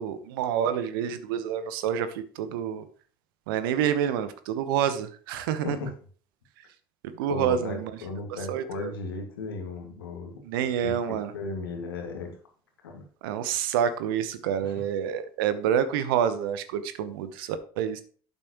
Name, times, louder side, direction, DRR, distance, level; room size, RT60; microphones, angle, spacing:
voice 1, 0.0-2.8 3.5-5.8 7.2-7.9 8.5-8.9 10.4-11.3 13.2-18.0, right 9 dB, 75° right, 12 dB, 1.0 m, -28 dB
voice 2, 7.3-10.4 10.8-12.4 12.8-13.0 14.6-14.7, left 3 dB, 80° left, 3 dB, 2.0 m, -36 dB
8.8 x 8.2 x 3.0 m, 0.42 s
figure-of-eight pair, 55°, 12 cm